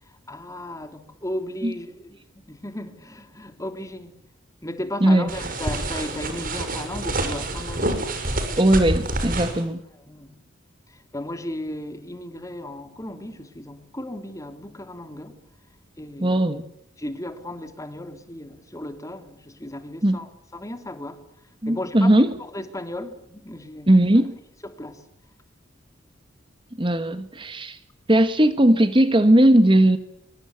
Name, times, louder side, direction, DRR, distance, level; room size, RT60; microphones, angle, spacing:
voice 1, 0.0-4.2 4.6-8.1 10.1-10.4 10.9-15.4 16.0-16.4 17.0-23.9 24.6-25.1, left 1 dB, 15° left, 2.9 m, -35 dB
voice 2, 5.0-5.3 8.6-9.8 16.2-16.7 20.0-20.2 21.6-22.3 23.9-24.4 26.8-27.8 28.1-30.0, right 1 dB, 25° right, 1.4 m, -18 dB
sound 1, 5.3-9.6, right 1 dB, 45° right, 6.0 m, -27 dB
26.0 x 24.5 x 8.2 m
head